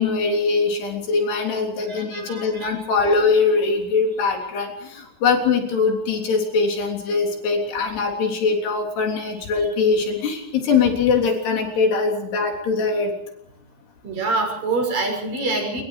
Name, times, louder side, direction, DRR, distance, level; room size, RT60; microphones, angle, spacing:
voice 1, 0.0-13.1, left 4 dB, 70° left, 2 dB, 5.5 m, -22 dB
voice 2, 1.9-2.7 14.0-15.8, right 3 dB, 50° right, 2 dB, 7.9 m, -25 dB
27.0 x 23.5 x 4.9 m, 0.72 s
omnidirectional pair, 4.9 m